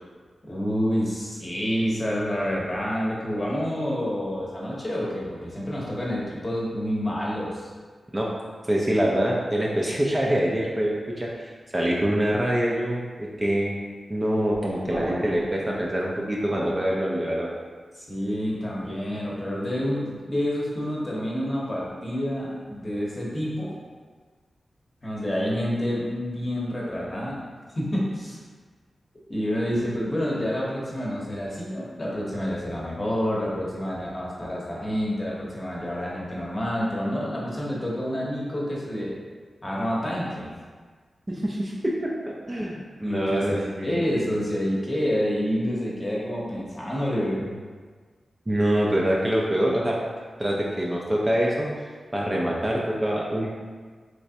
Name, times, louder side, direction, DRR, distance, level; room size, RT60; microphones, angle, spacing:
voice 1, 0.4-7.7 17.9-23.8 25.0-27.5 27.8-28.4 29.3-39.1 39.6-40.5 43.0-47.6, equal, 25° left, -5 dB, 0.9 m, -28 dB
voice 2, 8.7-13.8 14.1-17.5 41.3-44.0 48.5-50.0 50.4-51.7 52.1-53.5, right 1 dB, 20° right, -3 dB, 0.4 m, -25 dB
sound 1, 14.9-17.2, equal, 80° right, 1.0 m, -36 dB
3.2 x 3.1 x 2.7 m, 1.5 s
wide cardioid pair, 85°, 0 cm